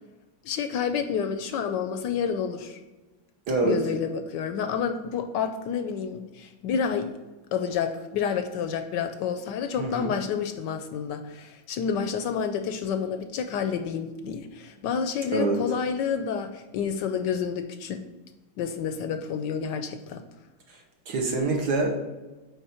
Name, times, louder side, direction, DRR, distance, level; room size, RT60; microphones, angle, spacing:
voice 1, 0.4-2.8 3.6-7.1 7.5-18.0 18.6-20.2, left 7 dB, 75° left, 8 dB, 1.1 m, -29 dB
voice 2, 3.5-3.8 9.8-10.1 15.3-15.6 21.1-22.0, right 2 dB, 60° right, 1 dB, 1.6 m, -25 dB
9.2 x 3.7 x 4.3 m, 1.2 s
omnidirectional pair, 2.1 m